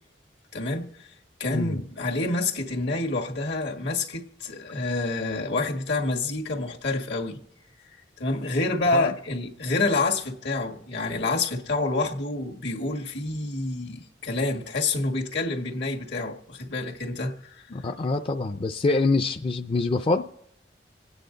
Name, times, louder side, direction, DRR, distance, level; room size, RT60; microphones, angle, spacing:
voice 1, 0.5-1.1 1.4-7.4 8.2-17.7, left 2 dB, 75° left, 1.8 m, -28 dB
voice 2, 17.7-20.2, left 3 dB, 30° left, 0.4 m, -25 dB
27.0 x 9.1 x 3.9 m
head